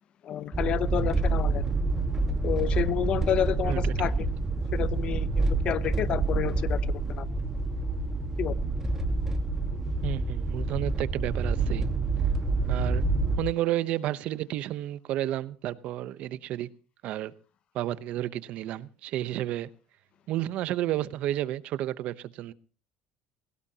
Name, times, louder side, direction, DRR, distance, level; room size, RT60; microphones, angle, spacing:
voice 1, 0.2-1.6 2.4-4.3 4.7-6.8 7.1-7.3 8.4-8.6, left 10 dB, 45° left, 0.7 m, -29 dB
sound 1, 0.5-13.4, right 3 dB, 15° right, 1.6 m, -27 dB
voice 2, 10.0-11.9 12.7-13.0 13.4-16.7 17.0-17.3 17.7-19.7 20.3-22.5, right 13 dB, 60° right, 0.8 m, -31 dB
22.0 x 17.0 x 2.9 m
cardioid pair, 145°, 2 cm